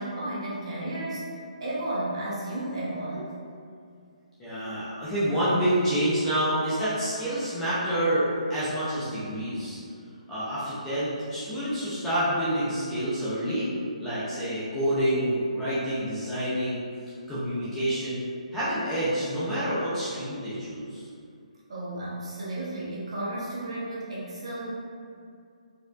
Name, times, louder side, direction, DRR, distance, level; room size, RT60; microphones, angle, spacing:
voice 1, 0.0-3.3 21.7-24.8, right 1 dB, 50° right, -7 dB, 1.0 m, -33 dB
voice 2, 4.4-9.8 10.3-13.7 14.0-16.8 17.3-18.3 18.5-21.0, right 1 dB, 5° left, -12 dB, 0.4 m, -28 dB
4.3 x 2.5 x 2.3 m, 2.3 s
hypercardioid pair, 175°, 4 cm